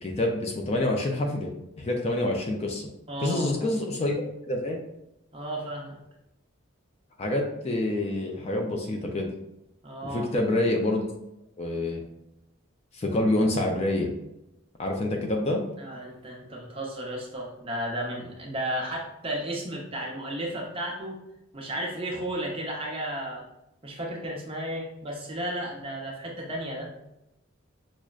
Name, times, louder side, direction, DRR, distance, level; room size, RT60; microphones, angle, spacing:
voice 1, 0.0-2.9 3.2-4.1 4.5-4.8 7.2-9.3 10.0-11.1 11.6-12.0 12.9-14.1 14.8-15.6, left 1 dB, 30° left, 1 dB, 0.4 m, -27 dB
voice 2, 3.1-3.7 5.3-6.0 9.8-10.3 15.8-21.2 21.5-23.4 23.8-26.9, right 1 dB, 25° right, -2 dB, 0.7 m, -33 dB
6.0 x 2.1 x 2.4 m, 0.87 s
head